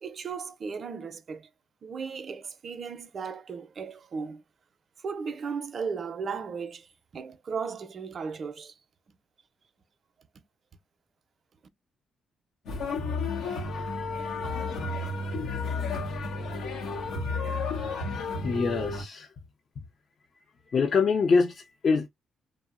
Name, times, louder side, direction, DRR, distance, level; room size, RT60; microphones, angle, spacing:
voice 1, 0.0-1.4 1.8-4.4 5.0-6.9 7.1-8.7, right 5 dB, 45° right, 0.5 m, -36 dB
sound 1, 12.7-19.0, left 3 dB, 80° left, 0.7 m, -32 dB
voice 2, 18.4-19.3 20.7-22.1, left 4 dB, 50° left, 0.4 m, -24 dB
2.7 x 2.0 x 2.3 m
cardioid pair, 90°, 0 cm